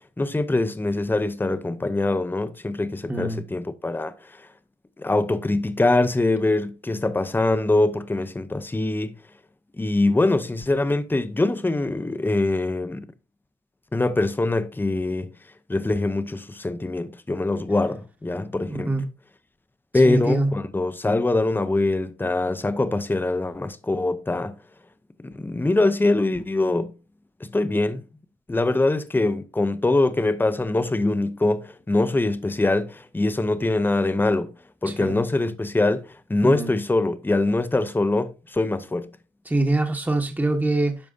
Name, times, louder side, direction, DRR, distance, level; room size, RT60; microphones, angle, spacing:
voice 1, 0.2-4.1 5.0-9.2 9.8-13.1 13.9-15.3 15.7-18.9 19.9-24.5 25.2-26.9 27.5-28.0 28.5-34.5 34.8-39.1, left 2 dB, 10° left, 0.7 m, -23 dB
voice 2, 3.1-3.4 18.7-19.1 20.0-20.5 34.9-35.2 36.4-36.7 39.5-41.0, right 2 dB, 10° right, 1.1 m, -24 dB
12.0 x 4.7 x 2.6 m
cardioid pair, 90°, 20 cm